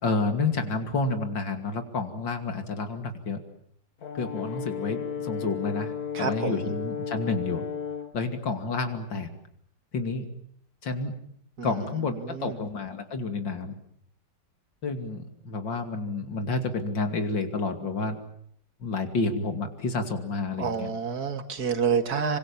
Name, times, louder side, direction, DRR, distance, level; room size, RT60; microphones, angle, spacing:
voice 1, 0.0-3.4 4.1-7.6 8.1-9.3 9.9-10.3 10.8-11.1 11.6-13.7 14.8-18.2 18.8-20.9, left 3 dB, 80° left, 7 dB, 3.3 m, -30 dB
Brass instrument, 4.0-8.2, left 7 dB, 55° left, 1.9 m, -34 dB
voice 2, 6.1-6.5 11.6-11.7 12.3-12.6 20.6-22.4, right 6 dB, 55° right, 8 dB, 2.4 m, -28 dB
27.5 x 24.5 x 7.2 m, 0.68 s
omnidirectional pair, 2.0 m